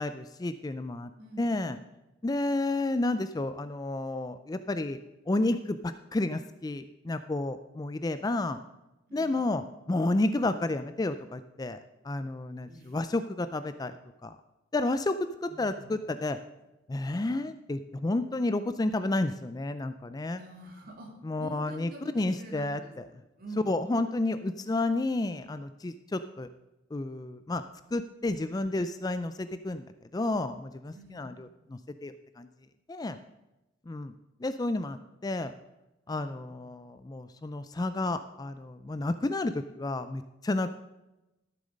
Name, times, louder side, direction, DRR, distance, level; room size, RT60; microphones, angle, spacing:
voice 1, 0.0-1.1 1.4-1.8 2.2-5.0 5.3-8.6 9.1-11.8 12.0-13.9 14.2-14.4 14.7-16.4 16.9-20.4 21.2-23.1 23.7-26.5 26.9-27.6 27.9-32.5 32.9-33.2 33.9-34.1 34.4-35.5 36.1-40.8, left 2 dB, 20° left, 11 dB, 0.4 m, -31 dB
voice 2, 1.2-1.7 9.1-9.6 12.6-12.9 15.5-15.9 20.3-21.1 21.4-22.9 23.4-23.7 30.9-31.3 36.1-36.3, right 2 dB, 50° right, 1 dB, 2.6 m, -47 dB
13.0 x 7.7 x 5.2 m, 0.98 s
head